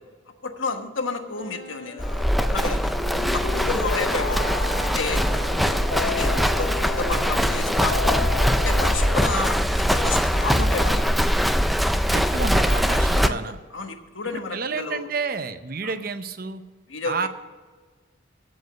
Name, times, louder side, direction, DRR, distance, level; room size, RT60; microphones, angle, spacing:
voice 1, 0.4-2.9 3.3-4.5 4.8-8.1 8.6-11.1 13.1-13.4 13.7-15.1 15.8-15.9 16.9-17.3, left 4 dB, 75° left, 6 dB, 1.2 m, -31 dB
Wind instrument woodwind instrument, 1.3-9.3, left 2 dB, 20° left, 3.5 m, -38 dB
Livestock farm animals working animals, 2.0-13.3, equal, ahead, 0.3 m, -22 dB
sound 1, 2.4-9.3, left 4 dB, 60° left, 0.6 m, -33 dB
voice 2, 12.1-13.6 14.3-16.6 17.0-17.3, right 4 dB, 45° right, 10 dB, 0.7 m, -30 dB
15.0 x 5.4 x 8.0 m, 1.4 s
head